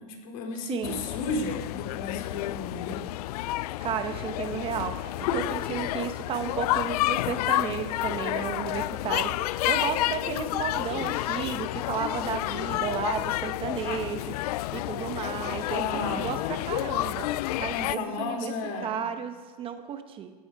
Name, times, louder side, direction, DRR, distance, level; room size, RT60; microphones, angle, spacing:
voice 1, 0.0-3.0 5.3-5.4 13.8-14.0 15.7-16.3 17.7-18.9, left 4 dB, 55° left, 3 dB, 3.9 m, -33 dB
voice 2, 0.6-1.0 3.8-17.3 17.6-18.5 18.8-20.3, right 7 dB, 25° right, 8 dB, 1.0 m, -33 dB
amb ext zoo many children quad, 0.8-18.0, left 17 dB, 75° left, 0.4 m, -30 dB
17.5 x 14.0 x 4.8 m, 1.3 s
supercardioid pair, 150°, 20 cm